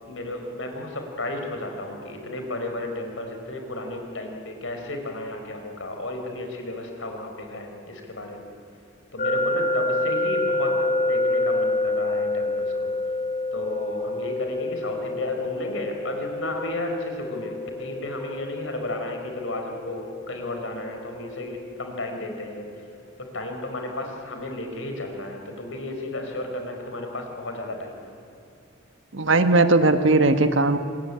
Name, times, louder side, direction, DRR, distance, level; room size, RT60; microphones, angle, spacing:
voice 1, 0.0-8.5 9.1-12.9 13.5-22.7 23.2-28.1, left 1 dB, 70° left, 4 dB, 4.8 m, -33 dB
sound 1, 9.2-22.1, left 2 dB, 40° left, 3.9 m, -28 dB
voice 2, 29.1-30.8, right 2 dB, 65° right, 8 dB, 1.5 m, -18 dB
25.5 x 21.0 x 10.0 m, 2.7 s
head